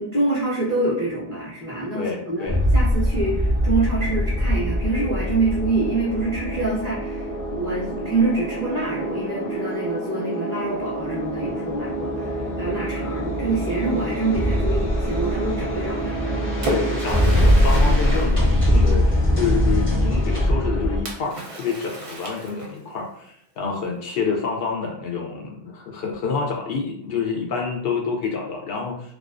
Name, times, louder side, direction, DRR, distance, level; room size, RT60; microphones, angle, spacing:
voice 1, 0.0-16.2, right 2 dB, 20° left, -6 dB, 0.4 m, -26 dB
voice 2, 1.9-2.6 16.6-29.1, left 5 dB, 70° left, 0 dB, 0.7 m, -28 dB
sound 1, 2.5-21.0, equal, 35° left, 0.9 m, -23 dB
Splash splatter, 16.1-19.3 21.1-23.0, right 1 dB, 45° right, 0.5 m, -33 dB
2.3 x 2.2 x 2.4 m, 0.68 s
omnidirectional pair, 1.0 m